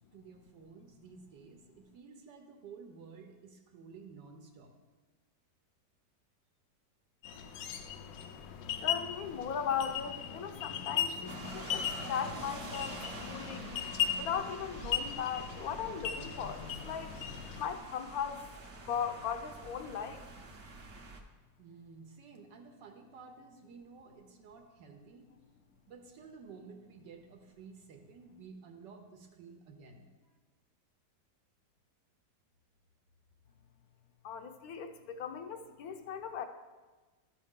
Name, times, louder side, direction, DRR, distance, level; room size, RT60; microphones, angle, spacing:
voice 1, 0.1-4.7 21.6-25.3 25.9-30.1, right 5 dB, 80° right, 2 dB, 1.4 m, -53 dB
sound 1, 7.2-17.7, left 9 dB, 85° left, 1.3 m, -38 dB
voice 2, 8.8-13.7 14.2-17.2 17.6-18.4 18.8-20.2 34.2-36.5, left 7 dB, 70° left, 8 dB, 1.0 m, -38 dB
sound 2, 11.3-21.2, right 3 dB, 50° right, 1.0 m, -47 dB
13.0 x 5.5 x 3.7 m, 1.3 s
omnidirectional pair, 1.9 m